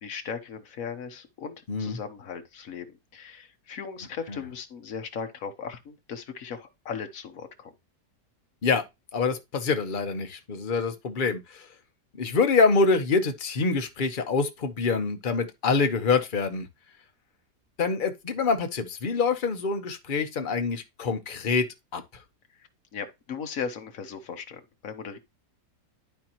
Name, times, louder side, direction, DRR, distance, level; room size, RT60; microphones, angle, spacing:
voice 1, 0.0-7.7 22.5-25.2, left 6 dB, 60° left, 1.4 m, -38 dB
voice 2, 1.7-2.0 8.6-8.8 9.1-11.6 12.2-16.7 17.8-21.7 21.9-22.0, left 4 dB, 40° left, 0.9 m, -25 dB
12.0 x 4.2 x 2.9 m
omnidirectional pair, 1.8 m